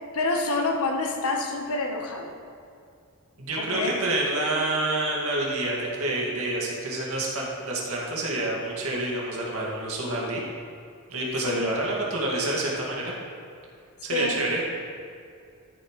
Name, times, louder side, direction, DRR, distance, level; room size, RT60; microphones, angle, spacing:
voice 1, 0.1-2.3 3.6-4.0 11.4-11.8 14.1-14.4, left 2 dB, 70° left, 3 dB, 1.1 m, -27 dB
voice 2, 3.4-10.5 11.1-13.1 14.0-14.6, right 2 dB, 70° right, -3 dB, 2.1 m, -28 dB
13.0 x 7.4 x 3.2 m, 2.4 s
head